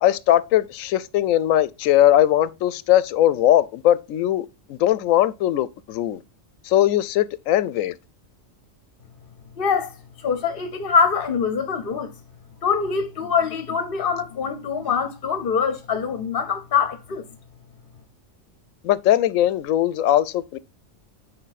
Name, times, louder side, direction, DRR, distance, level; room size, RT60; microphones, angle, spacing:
voice 1, 0.0-6.2 6.6-7.9 18.8-20.6, left 12 dB, 90° left, 1.0 m, -20 dB
voice 2, 9.6-12.1 12.6-17.2, left 6 dB, 50° left, 0.8 m, -24 dB
8.8 x 4.8 x 4.0 m
omnidirectional pair, 1.3 m